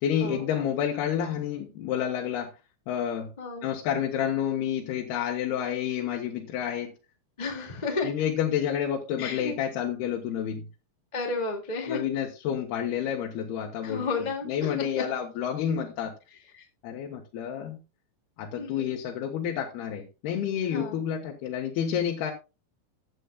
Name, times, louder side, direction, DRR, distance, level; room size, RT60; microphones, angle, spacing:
voice 1, 0.0-2.5 2.9-3.3 3.6-6.9 8.0-10.7 11.9-16.1 16.8-17.8 18.4-22.3, left 9 dB, 80° left, 1 dB, 3.2 m, -29 dB
voice 2, 7.4-8.1 9.2-9.5 11.1-12.0 13.8-15.0 16.5-16.6 18.6-19.0 20.7-21.0, left 3 dB, 20° left, 1 dB, 1.1 m, -32 dB
15.0 x 9.1 x 2.3 m, 0.28 s
omnidirectional pair, 4.5 m